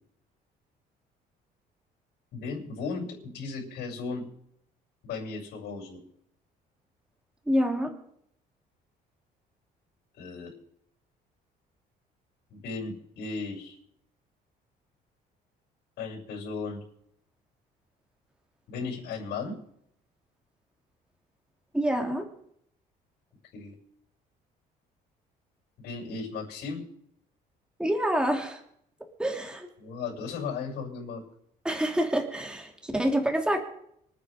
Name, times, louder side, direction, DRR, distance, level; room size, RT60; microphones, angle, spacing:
voice 1, 2.3-4.3 5.0-6.0 10.1-10.5 12.5-13.8 16.0-16.8 18.7-19.6 23.5-23.7 25.8-26.8 29.8-31.2, left 4 dB, 75° left, -5 dB, 6.9 m, -36 dB
voice 2, 7.5-7.9 21.7-22.2 27.8-28.6 29.2-29.7 31.6-33.6, equal, 5° right, 2 dB, 3.1 m, -27 dB
26.0 x 9.4 x 5.2 m, 0.71 s
cardioid pair, 110°, 17 cm